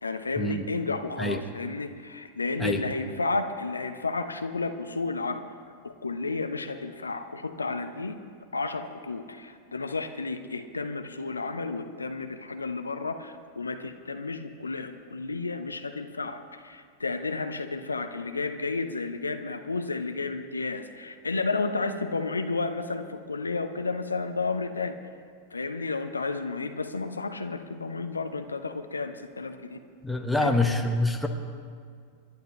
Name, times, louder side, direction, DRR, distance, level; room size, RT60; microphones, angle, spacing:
voice 1, 0.0-5.4 5.8-8.2 8.5-25.0 25.5-29.8 30.4-30.7, left 3 dB, 80° left, 7 dB, 0.8 m, -32 dB
voice 2, 30.0-31.3, left 2 dB, 5° left, 4 dB, 1.3 m, -25 dB
27.0 x 11.5 x 3.2 m, 2.1 s
figure-of-eight pair, 90°, 0 cm